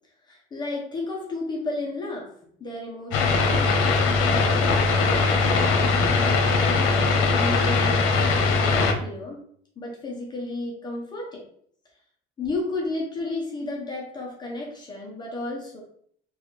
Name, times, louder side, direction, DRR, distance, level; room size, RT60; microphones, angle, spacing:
voice 1, 0.2-2.3 2.6-8.0 8.5-9.4 9.8-11.5 12.4-15.8, left 2 dB, 20° left, -2 dB, 0.6 m, -33 dB
sound 1, 3.1-8.9, left 4 dB, 80° left, 0.7 m, -21 dB
3.9 x 2.3 x 3.1 m, 0.63 s
cardioid pair, 175°, 21 cm